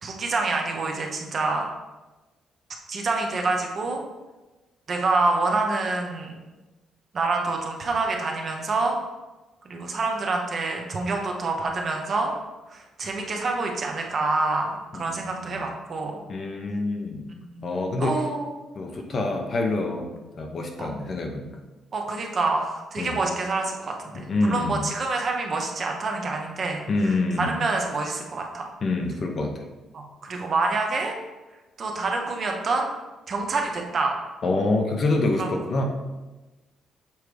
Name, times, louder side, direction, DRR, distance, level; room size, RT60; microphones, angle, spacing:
voice 1, 0.0-1.6 2.9-4.0 4.9-6.4 7.1-9.0 9.6-12.3 12.7-16.2 17.3-18.5 20.8-20.9 21.9-24.1 24.5-28.7 29.9-31.2 31.8-32.9 33.3-34.2 35.4-35.5, right 3 dB, 35° right, 2 dB, 0.8 m, -27 dB
voice 2, 14.9-15.6 16.3-17.3 17.6-18.2 18.7-21.5 23.0-23.2 24.3-24.8 26.9-27.6 28.8-29.5 34.4-35.8, left 2 dB, 35° left, 3 dB, 0.7 m, -26 dB
7.0 x 4.7 x 3.3 m, 1.1 s
cardioid pair, 175°, 0 cm